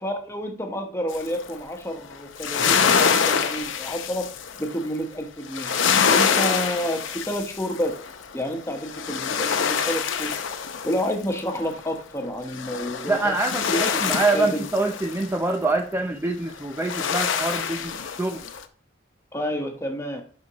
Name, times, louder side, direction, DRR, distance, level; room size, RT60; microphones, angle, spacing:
voice 1, 0.0-4.3 4.6-5.7 6.1-8.0 8.3-10.3 10.8-13.3 13.7-14.6 19.3-20.2, equal, 15° left, 3 dB, 1.1 m, -29 dB
sound 1, 1.1-1.5 2.1-4.8 5.5-8.2 8.7-11.7 12.5-15.3 16.6-18.6, left 6 dB, 75° left, 0.7 m, -25 dB
voice 2, 13.1-18.4, right 2 dB, 10° right, 3 dB, 0.5 m, -25 dB
11.5 x 4.3 x 2.9 m, 0.43 s
head